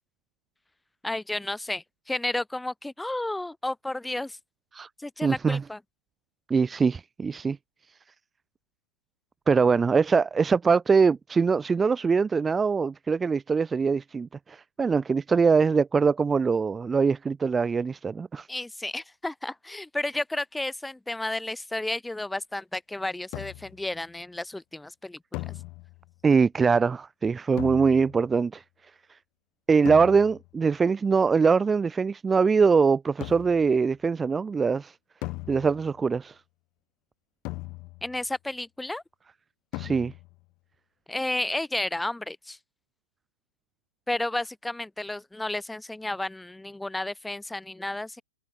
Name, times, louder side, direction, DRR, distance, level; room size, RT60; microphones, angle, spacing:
voice 1, 1.0-4.4 5.0-5.8 18.5-25.5 38.0-39.0 41.1-42.6 44.1-48.2, left 2 dB, 5° left, 1.2 m, -32 dB
voice 2, 5.2-5.6 6.5-7.6 9.5-18.5 26.2-28.6 29.1-29.2 29.7-35.0 35.5-36.4 39.7-40.1, right 5 dB, 10° right, 0.3 m, -23 dB
sound 1, 23.3-23.9 25.3-26.2 27.6-28.3 29.9-30.6 33.2-33.8 35.2-36.1 37.4-38.2 39.7-40.4, left 23 dB, 35° left, 0.6 m, -39 dB
figure-of-eight pair, 110°, 0 cm